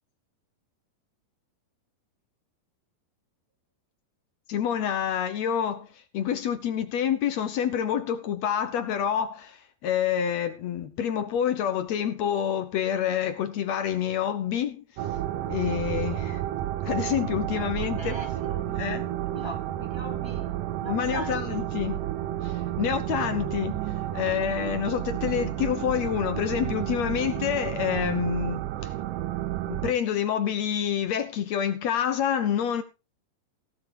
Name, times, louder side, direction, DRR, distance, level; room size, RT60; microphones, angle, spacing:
voice 1, 4.5-5.9 6.1-14.8 15.5-16.4 16.8-18.2 18.7-19.1 20.8-22.0 22.4-23.7 24.1-28.9 29.7-32.8, left 9 dB, 70° left, 1.7 m, -27 dB
sound 1, 15.0-29.9, right 13 dB, 70° right, 2.3 m, -31 dB
voice 2, 17.9-18.7 19.1-20.5 20.8-21.4, equal, 15° right, 1.0 m, -40 dB
16.5 x 7.2 x 4.7 m
omnidirectional pair, 4.3 m